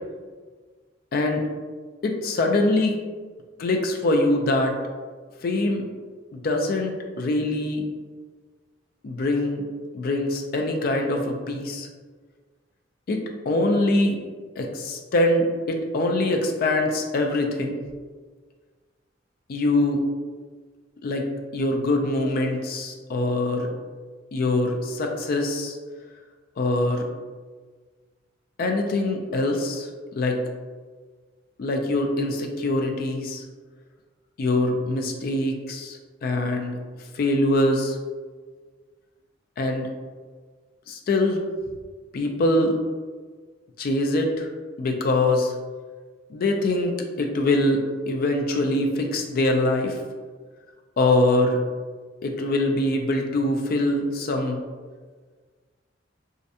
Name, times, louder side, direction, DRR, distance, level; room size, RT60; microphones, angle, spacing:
voice 1, 1.1-1.5 2.0-3.0 3.6-4.8 5.4-5.9 6.3-7.8 9.0-9.6 9.9-11.9 13.1-13.2 13.5-14.2 14.6-17.8 19.5-20.0 21.0-21.3 21.5-23.7 24.3-25.8 26.6-27.1 28.6-29.9 30.2-30.4 31.6-33.4 34.4-36.8 37.1-38.0 39.6-39.9 40.9-41.4 42.1-42.8 43.8-44.5 44.8-45.5 46.3-50.0 51.0-51.6 52.2-54.6, left 2 dB, 50° left, 3 dB, 0.3 m, -23 dB
2.5 x 2.1 x 2.6 m, 1.5 s
head